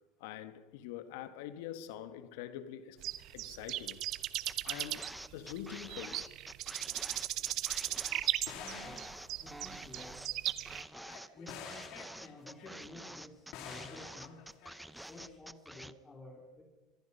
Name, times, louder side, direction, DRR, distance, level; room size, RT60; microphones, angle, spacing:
voice 1, 0.2-4.0 4.6-6.3, left 11 dB, 80° left, 1.6 m, -45 dB
sound 1, 3.0-10.8, right 15 dB, 55° right, 1.1 m, -37 dB
sound 2, 4.5-15.9, right 1 dB, 5° right, 0.7 m, -48 dB
sound 3, 6.7-6.8 7.4-7.5 8.5-10.0 10.9-13.3 13.5-15.4, left 8 dB, 60° left, 3.6 m, -50 dB
voice 2, 8.5-9.1 9.4-10.2 11.4-14.4 15.0-16.6, left 2 dB, 20° left, 3.7 m, -52 dB
25.0 x 22.0 x 5.6 m
supercardioid pair, 120°, 0 cm